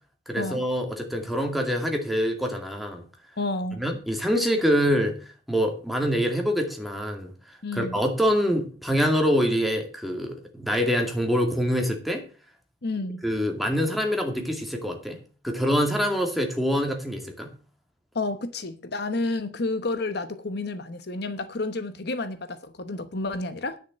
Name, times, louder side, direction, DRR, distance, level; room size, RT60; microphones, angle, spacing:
voice 1, 0.3-3.0 3.8-5.1 5.5-7.3 7.7-12.2 13.2-17.5, equal, ahead, 2.3 m, -25 dB
voice 2, 3.4-3.8 7.6-8.0 12.8-13.2 18.1-23.8, left 2 dB, 60° left, 1.0 m, -30 dB
10.5 x 6.5 x 7.6 m
head